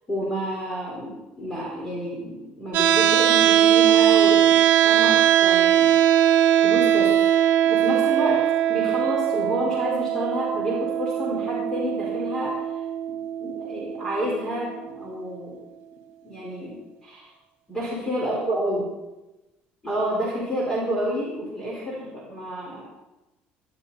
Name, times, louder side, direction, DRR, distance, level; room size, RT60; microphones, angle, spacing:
voice 1, 0.1-7.1 7.6-15.6 16.2-16.8 17.0-17.3 17.7-18.9 19.8-22.8, equal, 15° left, -4 dB, 4.5 m, -29 dB
sound 1, 2.7-14.8, right 10 dB, 65° right, 1.4 m, -20 dB
19.5 x 12.5 x 4.2 m, 1.0 s
cardioid pair, 145°, 4 cm